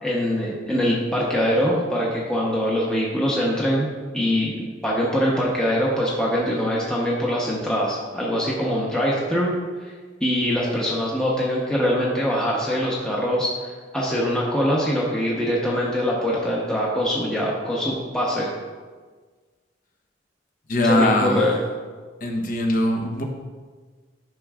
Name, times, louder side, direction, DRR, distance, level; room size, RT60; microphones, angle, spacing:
voice 1, 0.0-3.9 4.1-9.6 10.2-18.5 20.8-21.6, equal, 5° left, -5 dB, 0.9 m, -23 dB
voice 2, 20.7-21.5 22.2-23.2, left 1 dB, 50° left, 2 dB, 0.9 m, -21 dB
10.5 x 5.8 x 2.4 m, 1.4 s
head